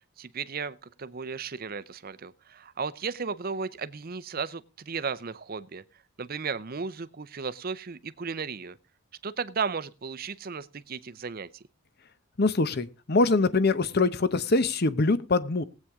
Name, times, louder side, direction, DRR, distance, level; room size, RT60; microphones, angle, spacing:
voice 1, 0.0-5.8 6.2-8.8 9.2-11.6, right 5 dB, 40° right, 0.6 m, -35 dB
voice 2, 12.4-15.6, left 3 dB, 45° left, 0.8 m, -24 dB
19.0 x 8.4 x 3.6 m
head